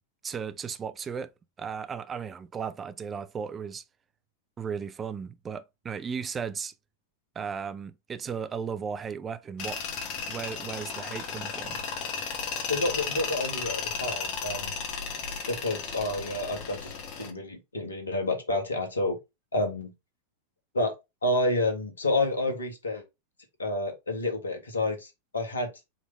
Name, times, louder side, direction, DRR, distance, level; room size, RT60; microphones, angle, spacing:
voice 1, 0.2-1.3 1.6-3.8 4.6-6.7 7.4-9.8 10.3-11.8, right 6 dB, 20° right, 0.5 m, -35 dB
Tools, 9.6-17.3, left 5 dB, 40° left, 1.3 m, -34 dB
voice 2, 12.7-14.7 15.5-16.9 17.2-19.2 19.5-19.9 20.7-20.9 21.2-23.0 23.6-25.7, left 2 dB, 75° left, 1.5 m, -29 dB
4.9 x 3.3 x 3.2 m
figure-of-eight pair, 90°, 0 cm